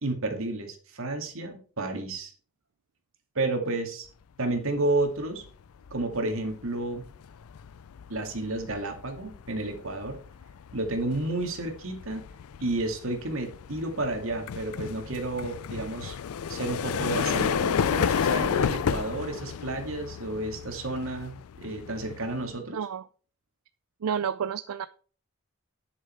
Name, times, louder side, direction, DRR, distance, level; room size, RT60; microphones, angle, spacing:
voice 1, 0.0-2.3 3.3-4.1 4.4-5.4 5.9-7.1 8.1-10.2 10.7-12.2 12.6-16.2 16.5-22.8, right 2 dB, 70° right, 4 dB, 2.3 m, -31 dB
sound 1, 5.2-5.5 5.8-22.6, left 7 dB, 80° left, 0.4 m, -32 dB
voice 2, 22.7-23.0 24.0-24.9, right 7 dB, 90° right, 14 dB, 0.4 m, -30 dB
10.5 x 6.9 x 4.5 m, 0.41 s
head